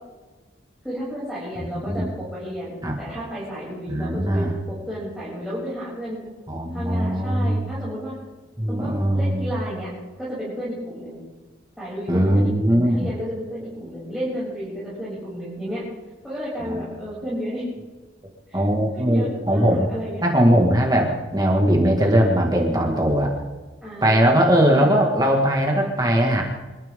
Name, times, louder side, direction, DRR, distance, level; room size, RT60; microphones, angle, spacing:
voice 1, 0.8-6.2 6.7-8.2 8.7-9.9 10.2-11.2 11.8-15.8 16.2-17.7 18.5-18.6 18.9-20.2 22.6-23.0 23.8-25.0, equal, ahead, -10 dB, 7.3 m, -32 dB
voice 2, 1.6-2.1 2.8-2.9 3.9-4.5 6.5-7.7 8.6-9.5 12.1-13.1 16.6-16.8 18.5-19.9 20.2-23.3 24.0-26.4, equal, 20° right, 0 dB, 2.1 m, -20 dB
26.5 x 14.0 x 3.8 m, 1.3 s
head